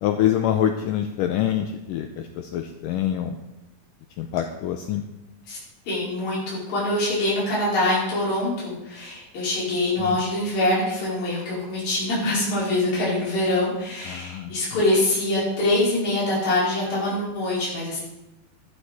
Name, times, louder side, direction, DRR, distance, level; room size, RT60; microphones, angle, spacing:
voice 1, 0.0-3.4 4.2-5.0 10.0-10.2 14.1-14.8, left 10 dB, 80° left, 6 dB, 2.0 m, -26 dB
voice 2, 5.9-18.0, left 1 dB, 65° left, -7 dB, 6.7 m, -24 dB
13.0 x 12.0 x 4.2 m, 0.96 s
omnidirectional pair, 4.4 m